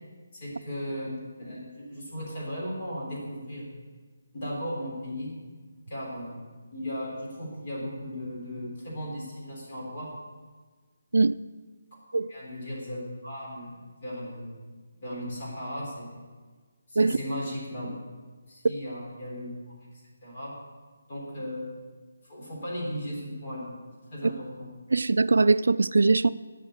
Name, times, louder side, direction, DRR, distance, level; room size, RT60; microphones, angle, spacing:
voice 1, 0.3-3.7 4.3-5.3 5.9-10.1 12.3-16.2 16.9-17.9 18.5-19.5 20.2-20.6 21.1-21.7 22.2-23.8 24.1-24.7, equal, 30° left, 3.7 m, -36 dB
voice 2, 24.9-26.3, right 3 dB, 80° right, 0.4 m, -21 dB
12.0 x 6.6 x 8.2 m
hypercardioid pair, 175°, 0 cm